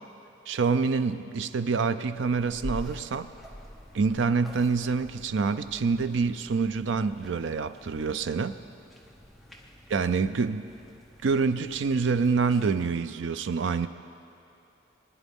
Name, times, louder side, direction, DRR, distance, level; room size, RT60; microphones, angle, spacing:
voice 1, 0.5-3.3 3.9-8.6 9.9-10.7 11.2-13.9, right 4 dB, 65° right, 11 dB, 0.4 m, -26 dB
sound 1, 2.1-12.9, equal, ahead, 0.9 m, -46 dB
21.5 x 10.0 x 3.6 m, 2.6 s
head